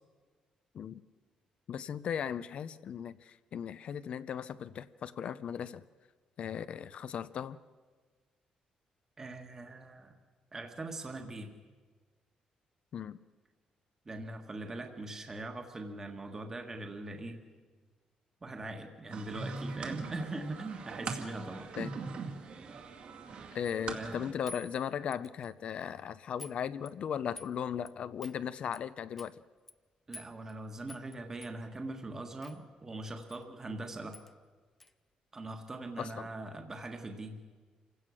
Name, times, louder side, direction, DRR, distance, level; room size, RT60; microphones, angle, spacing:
voice 1, 1.7-5.8 6.4-7.6 12.9-13.2 21.8-21.9 23.5-29.4 33.7-33.8 36.0-36.3, left 8 dB, 55° left, 14 dB, 0.6 m, -37 dB
voice 2, 9.2-10.1 10.5-11.5 14.0-17.4 18.4-21.7 23.9-24.3 30.1-34.2 35.3-37.4, right 2 dB, 20° right, 4 dB, 1.5 m, -41 dB
sound 1, 19.1-24.3, right 4 dB, 55° right, 2.2 m, -41 dB
sound 2, 23.6-23.9 24.5-25.5 25.8-26.0 26.4-26.6 26.9-27.5 27.9-28.0 28.2-28.4 28.7-28.8 29.2-29.3 29.7-29.8 30.1-30.5 30.9-31.2 31.4-31.5 32.4-32.6 33.3-33.4 33.7-33.8 34.1-34.3 34.8-34.9, left 2 dB, 10° left, 0.6 m, -50 dB
27.0 x 16.5 x 6.3 m, 1.4 s
cardioid pair, 150°, 2 cm